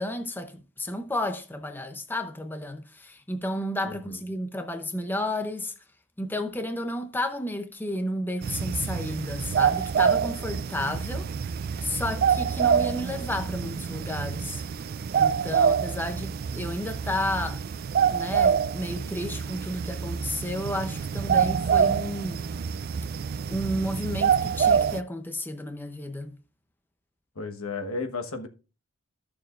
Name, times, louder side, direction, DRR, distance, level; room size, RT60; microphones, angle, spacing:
voice 1, 0.0-5.7 6.2-11.3 11.8-14.6 15.1-17.6 18.1-22.5 23.5-26.4, left 1 dB, 10° left, 0.6 m, -32 dB
sound 1, 8.4-25.0, right 7 dB, 45° right, 0.3 m, -26 dB
voice 2, 27.3-28.5, left 3 dB, 85° left, 1.3 m, -33 dB
13.5 x 6.8 x 2.5 m
head